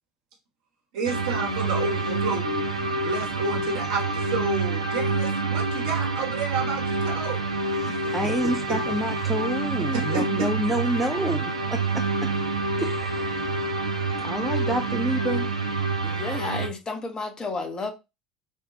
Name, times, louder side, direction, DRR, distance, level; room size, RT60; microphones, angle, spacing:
voice 1, 0.9-7.4 7.9-8.8 9.9-10.5, right 4 dB, 60° right, 1.0 m, -31 dB
sound 1, 1.0-16.7, right 3 dB, 85° right, 0.4 m, -27 dB
voice 2, 8.1-12.3 12.8-13.4 14.2-15.5, right 1 dB, 5° right, 0.5 m, -28 dB
voice 3, 16.0-17.9, left 3 dB, 25° left, 0.8 m, -32 dB
3.5 x 2.3 x 3.7 m
figure-of-eight pair, 65°, 3 cm